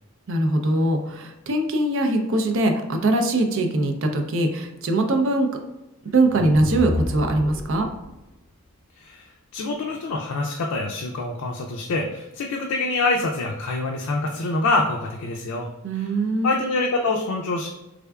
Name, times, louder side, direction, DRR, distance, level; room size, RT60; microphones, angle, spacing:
voice 1, 0.3-5.5 6.1-7.9 15.8-16.6, right 2 dB, 60° right, 5 dB, 0.5 m, -22 dB
sound 1, 6.0-8.1, left 1 dB, 70° left, 1.0 m, -30 dB
voice 2, 9.0-15.7 16.0-16.1 16.4-17.7, left 3 dB, 85° left, 1 dB, 0.4 m, -25 dB
3.6 x 3.4 x 2.3 m, 0.98 s
head